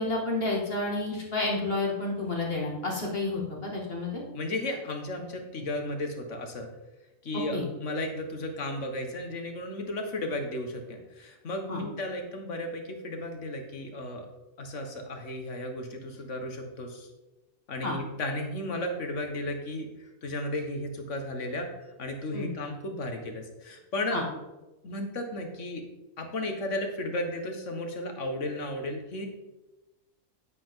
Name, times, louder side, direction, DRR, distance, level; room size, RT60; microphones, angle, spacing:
voice 1, 0.0-4.2 7.5-7.6 11.7-11.8 17.8-18.0 22.3-22.5 24.1-24.2, left 2 dB, 40° left, -2 dB, 2.4 m, -30 dB
voice 2, 4.3-6.7 7.2-14.3 14.6-17.1 17.7-21.7 22.0-24.2 24.8-25.8 26.2-29.3, left 1 dB, 60° left, 4 dB, 1.7 m, -34 dB
9.9 x 8.5 x 3.8 m, 1.0 s
omnidirectional pair, 1.5 m